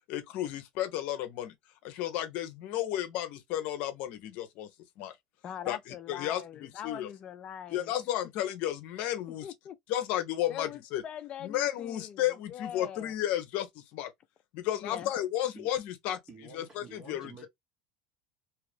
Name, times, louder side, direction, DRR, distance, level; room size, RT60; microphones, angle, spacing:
voice 1, 0.1-1.5 1.8-4.7 5.0-5.1 5.7-7.1 7.7-9.5 9.9-11.0 11.4-14.1 14.5-16.2 16.5-17.3, left 12 dB, 65° left, 0.7 m, -33 dB
voice 2, 5.4-7.9 9.4-9.8 10.5-13.1 14.8-15.1, left 9 dB, 40° left, 0.4 m, -42 dB
voice 3, 16.3-17.5, right 4 dB, 25° right, 1.4 m, -50 dB
2.9 x 2.4 x 3.4 m
supercardioid pair, 125°, 3 cm